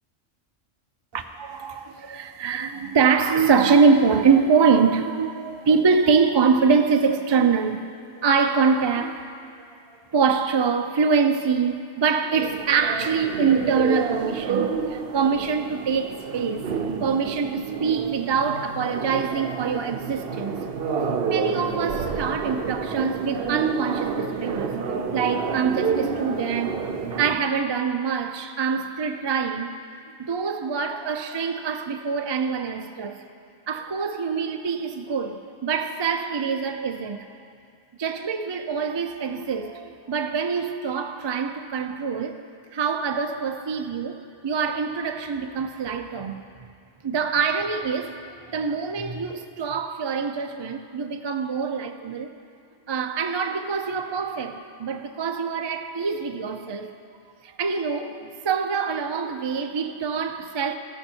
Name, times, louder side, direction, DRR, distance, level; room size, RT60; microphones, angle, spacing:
voice 1, 1.1-7.8 8.2-9.3 10.1-16.7 17.0-20.6 21.3-24.8 25.1-26.8 27.2-29.8 30.2-33.2 33.7-37.2 38.0-42.3 42.7-46.4 47.0-48.1 48.5-52.3 52.9-56.9 57.4-60.7, right 5 dB, 40° right, 0.4 m, -24 dB
sound 1, 12.3-27.4, right 5 dB, 55° right, 0.8 m, -29 dB
14.5 x 12.5 x 4.5 m
omnidirectional pair, 1.3 m